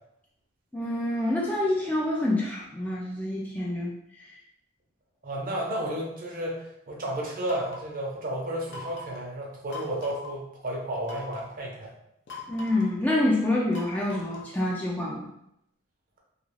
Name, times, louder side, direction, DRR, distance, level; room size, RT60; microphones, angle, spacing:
voice 1, 0.7-3.9 12.5-15.3, left 1 dB, 10° left, -4 dB, 0.4 m, -27 dB
voice 2, 5.2-11.9, right 1 dB, 45° right, -2 dB, 0.7 m, -32 dB
sound 1, 7.4-8.0 8.7-9.2 9.7-10.3 11.0-11.5 12.3-12.9 13.7-14.6, left 2 dB, 60° left, 0.6 m, -42 dB
2.4 x 2.3 x 3.1 m, 0.78 s
head